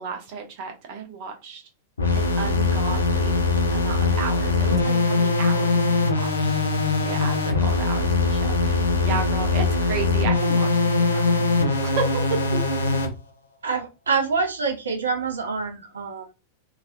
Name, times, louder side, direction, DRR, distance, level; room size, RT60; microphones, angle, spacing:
voice 1, 0.0-1.6 2.1-3.4 3.7-6.6 7.0-11.5 11.8-12.2 12.5-12.6, right 5 dB, 45° right, 1.0 m, -33 dB
dnb reese, 2.0-13.1, left 3 dB, 75° left, 0.6 m, -22 dB
voice 2, 13.6-16.3, right 5 dB, 70° right, 0.5 m, -26 dB
3.0 x 2.8 x 2.5 m
figure-of-eight pair, 90°, 0 cm